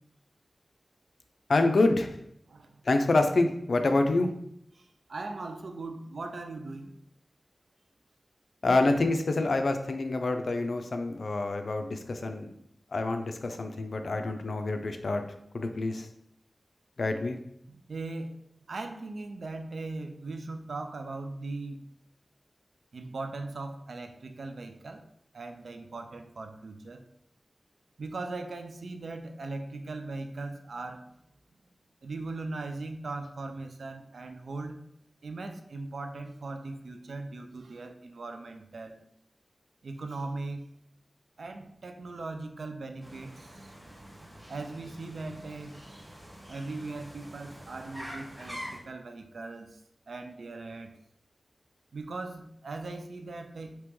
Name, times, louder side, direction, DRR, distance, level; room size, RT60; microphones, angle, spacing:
voice 1, 1.5-2.2 2.8-4.3 8.6-12.5 12.9-15.2 15.5-16.1 17.0-17.4, left 2 dB, 75° left, 6 dB, 0.4 m, -27 dB
voice 2, 4.8-6.9 17.7-18.4 18.7-21.8 22.9-25.1 25.3-27.0 28.0-31.1 32.0-34.8 35.2-39.0 39.8-40.6 41.4-43.7 44.5-45.9 46.5-49.8 50.1-51.0 51.9-53.8, right 3 dB, 90° right, 6 dB, 0.4 m, -39 dB
sound 1, 43.0-48.8, equal, 25° right, 1.0 m, -45 dB
3.0 x 2.9 x 3.5 m, 0.73 s
wide cardioid pair, 90°, 0 cm